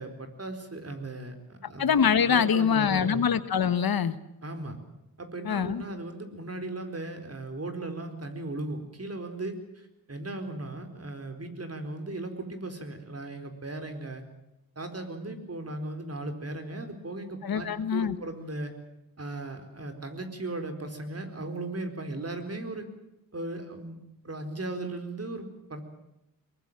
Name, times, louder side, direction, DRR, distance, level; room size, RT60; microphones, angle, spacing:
voice 1, 0.0-2.0 2.3-3.2 4.4-4.8 5.2-14.2 14.8-18.7 19.2-22.9 23.3-24.0 24.2-25.8, right 2 dB, 45° right, 7 dB, 4.5 m, -37 dB
voice 2, 1.8-4.1 5.5-5.8 17.4-18.2, left 7 dB, 90° left, 13 dB, 1.4 m, -24 dB
22.5 x 22.0 x 7.5 m, 0.89 s
wide cardioid pair, 80°, 35 cm